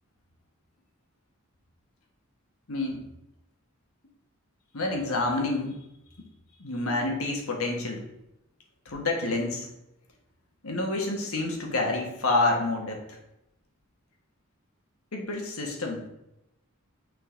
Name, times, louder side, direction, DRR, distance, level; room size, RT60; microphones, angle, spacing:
voice 1, 2.7-3.0 4.7-5.8 6.6-8.0 8.8-9.7 10.6-13.2 15.1-16.1, left 2 dB, 80° left, 2 dB, 1.5 m, -28 dB
6.4 x 3.9 x 5.0 m, 0.87 s
head